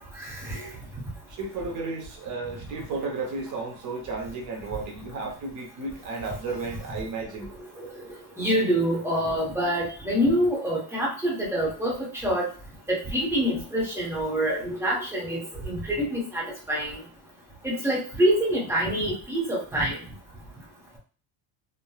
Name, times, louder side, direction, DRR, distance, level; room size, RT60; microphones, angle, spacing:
voice 1, 0.1-0.7 7.8-8.0 8.4-12.5 12.9-17.0 17.6-20.0, equal, 5° right, -5 dB, 0.9 m, -26 dB
voice 2, 1.3-7.5, right 3 dB, 40° right, 1 dB, 0.9 m, -33 dB
3.1 x 2.2 x 2.3 m, 0.38 s
cardioid pair, 145°, 48 cm